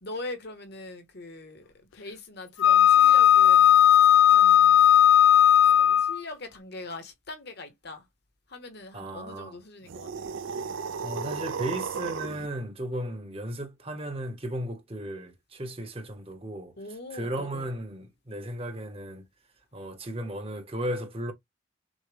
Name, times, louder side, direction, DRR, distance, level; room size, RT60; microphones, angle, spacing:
voice 1, 0.0-3.8 4.3-4.8 5.6-8.0 8.5-10.3 16.8-17.6, left 2 dB, 55° left, 1.1 m, -42 dB
Wind instrument woodwind instrument, 2.6-6.2, left 10 dB, 75° left, 0.4 m, -17 dB
voice 2, 8.9-9.6 10.4-10.6 11.0-19.3 19.7-21.3, right 1 dB, 30° right, 0.9 m, -35 dB
sound 1, 9.8-12.5, right 5 dB, 75° right, 0.5 m, -34 dB
6.3 x 2.2 x 3.3 m
head